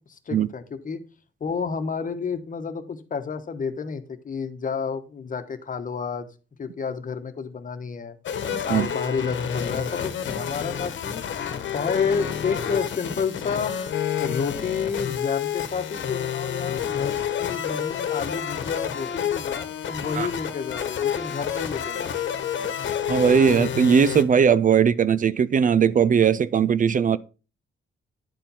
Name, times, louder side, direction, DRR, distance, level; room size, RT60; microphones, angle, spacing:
voice 1, 0.1-1.0 1.4-6.3 6.6-8.2 8.7-11.2 11.7-13.7 14.2-22.3, left 5 dB, 40° left, 1.1 m, -30 dB
sound 1, 8.2-24.2, left 8 dB, 65° left, 1.2 m, -29 dB
voice 2, 8.5-8.9 20.2-20.3 23.1-27.2, right 7 dB, 40° right, 0.4 m, -19 dB
10.0 x 4.5 x 5.4 m
cardioid pair, 100°, 20 cm